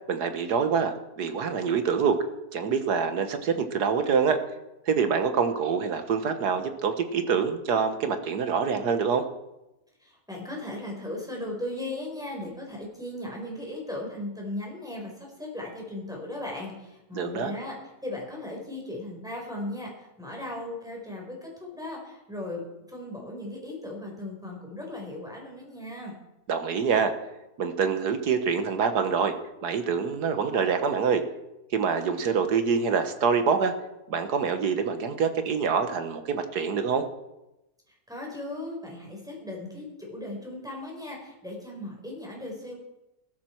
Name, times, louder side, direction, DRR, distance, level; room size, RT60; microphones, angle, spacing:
voice 1, 0.1-2.2 2.5-4.4 4.9-9.3 17.1-17.5 26.5-27.1 27.6-29.3 29.6-31.2 31.7-33.7 34.1-37.0, right 6 dB, 75° right, 8 dB, 1.8 m, -25 dB
voice 2, 10.0-17.8 18.0-26.1 37.9-42.7, left 1 dB, ahead, -2 dB, 4.4 m, -37 dB
16.0 x 14.0 x 4.6 m, 0.95 s
omnidirectional pair, 1.7 m